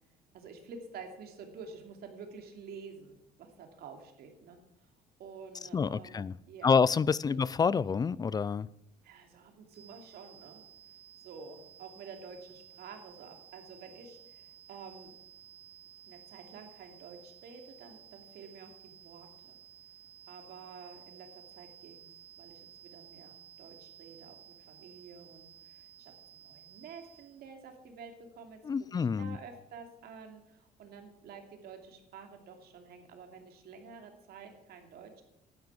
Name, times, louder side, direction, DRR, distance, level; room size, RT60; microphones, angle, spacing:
voice 1, 0.3-4.9 5.2-6.8 7.3-7.4 9.0-10.6 11.2-15.1 16.0-19.6 20.3-22.1 22.4-35.2, right 5 dB, 65° right, 2.8 m, -50 dB
voice 2, 5.7-6.3 6.6-8.7 28.6-29.4, left 5 dB, 25° left, 0.4 m, -27 dB
sound 1, 9.7-27.4, right 11 dB, 35° right, 0.8 m, -55 dB
11.5 x 9.6 x 7.1 m
cardioid pair, 110°, 17 cm